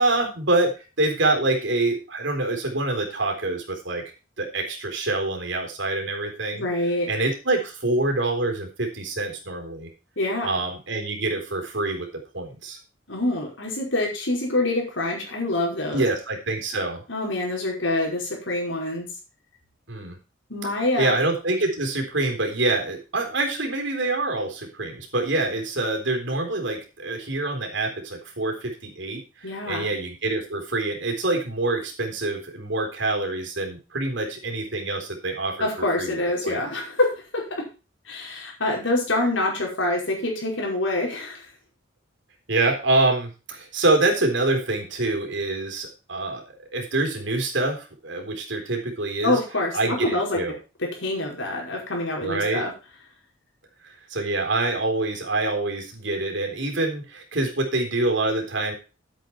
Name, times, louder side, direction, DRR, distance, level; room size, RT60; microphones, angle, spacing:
voice 1, 0.0-4.0 4.4-6.6 7.1-9.9 10.4-12.1 12.3-12.8 15.9-17.0 19.9-20.2 21.0-35.7 36.0-36.2 36.4-36.6 42.5-46.4 46.7-49.4 49.7-50.6 52.2-52.6 53.8-58.7, right 2 dB, 65° right, 3 dB, 3.8 m, -26 dB
voice 2, 6.5-7.1 10.2-10.6 13.1-16.1 17.1-19.1 20.5-21.1 29.4-29.9 35.6-37.7 38.1-41.5 49.2-50.4 50.8-52.7, left 2 dB, 70° left, -1 dB, 5.3 m, -26 dB
10.5 x 8.4 x 4.5 m, 0.31 s
head